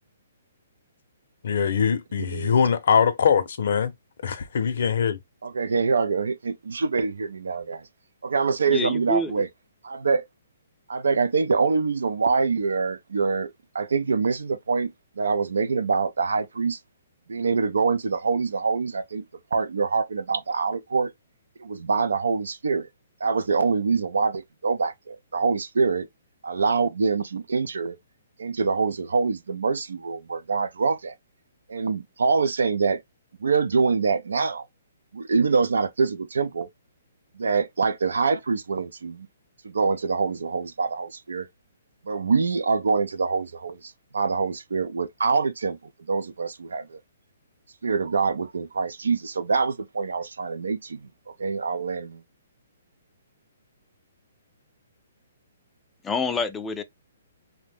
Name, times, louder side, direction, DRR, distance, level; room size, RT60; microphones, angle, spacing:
voice 1, 1.4-3.9 4.2-5.2, left 7 dB, 65° left, 0.5 m, -22 dB
voice 2, 2.2-2.6 5.4-7.8 8.2-9.5 9.8-10.2 10.9-16.8 17.3-19.2 19.5-21.1 21.6-22.9 23.2-26.1 26.4-28.0 28.4-31.1 31.7-33.0 33.4-34.6 35.1-36.7 37.4-39.3 39.6-41.5 42.1-45.8 46.1-47.0 47.8-51.0 51.4-52.2, right 4 dB, 90° right, 0.3 m, -25 dB
voice 3, 8.7-9.5 56.0-56.8, left 2 dB, 10° left, 0.3 m, -27 dB
2.5 x 2.1 x 3.3 m
hypercardioid pair, 155°, 0 cm